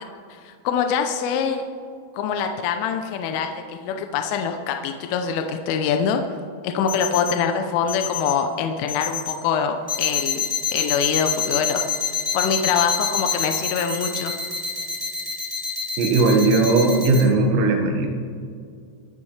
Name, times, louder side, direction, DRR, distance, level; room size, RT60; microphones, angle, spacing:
voice 1, 0.3-1.6 2.1-6.2 6.6-10.4 10.7-11.9 12.3-14.3, left 7 dB, 80° left, 5 dB, 3.2 m, -24 dB
sound 1, 6.9-7.3 7.9-8.3 8.9-9.3 9.9-17.2, left 6 dB, 5° right, 2.1 m, -26 dB
voice 2, 16.0-18.1, right 3 dB, 85° right, 3 dB, 4.3 m, -18 dB
25.5 x 12.5 x 3.3 m, 2.3 s
omnidirectional pair, 5.9 m